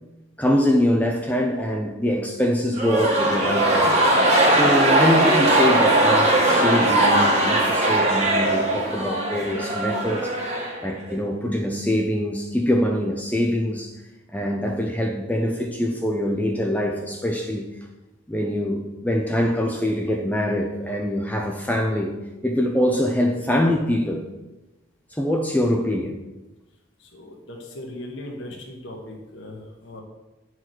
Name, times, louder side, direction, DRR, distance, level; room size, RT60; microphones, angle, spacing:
voice 1, 0.4-4.0 4.5-10.3 10.8-13.9 14.3-17.6 18.3-22.1 22.4-24.2 25.1-26.2, equal, 10° left, 1 dB, 0.6 m, -24 dB
sound 1, 2.7-11.2, right 1 dB, 30° right, 1.7 m, -19 dB
voice 2, 27.0-30.0, left 1 dB, 65° left, -1 dB, 1.4 m, -38 dB
9.4 x 4.8 x 6.1 m, 1.1 s
head